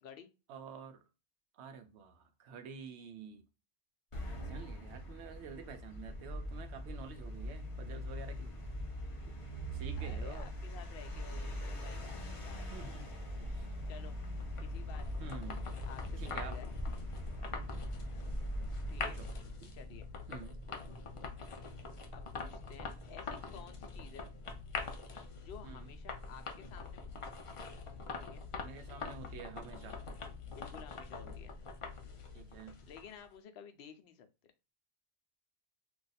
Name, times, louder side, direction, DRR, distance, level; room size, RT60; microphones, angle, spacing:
voice 1, 0.5-1.0 1.5-3.5 4.3-8.5 9.7-10.5 12.7-13.1 13.4-13.8 15.2-15.6 16.1-16.6 19.0-19.3 19.6-19.7 20.3-20.6 25.6-25.9 28.6-30.0 31.2-31.3 32.3-32.8, right 5 dB, 85° right, 0.9 m, -49 dB
sound 1, 4.1-19.6, equal, 35° left, 0.7 m, -41 dB
voice 2, 10.0-12.9 13.9-14.2 14.6-15.3 15.9-16.7 18.9-19.2 19.7-20.1 22.1-24.3 25.4-27.4 28.1-28.4 30.5-31.6 32.8-34.3, left 8 dB, 65° left, 0.7 m, -53 dB
sound 2, 14.2-33.3, left 4 dB, 50° left, 0.4 m, -45 dB
2.5 x 2.3 x 4.0 m
omnidirectional pair, 1.1 m